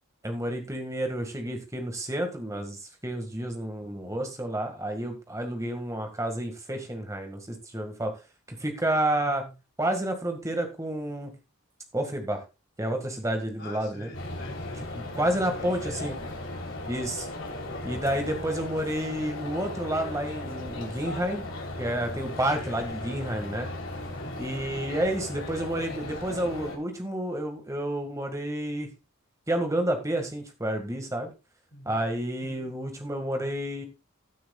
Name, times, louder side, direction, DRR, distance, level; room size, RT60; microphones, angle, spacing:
voice 1, 0.2-8.1 8.5-9.4 9.8-11.3 11.9-12.4 12.8-14.1 15.2-16.2 16.9-17.3 17.8-21.4 21.8-23.7 24.4-28.9 29.5-31.3 31.9-33.9, right 1 dB, 15° right, 1.8 m, -30 dB
voice 2, 13.6-16.1 22.5-22.8 24.1-25.0 31.7-32.0 32.4-32.7, left 1 dB, 50° left, 3.6 m, -46 dB
sound 1, 14.1-26.8, left 2 dB, 70° left, 3.4 m, -37 dB
16.0 x 9.3 x 2.4 m
head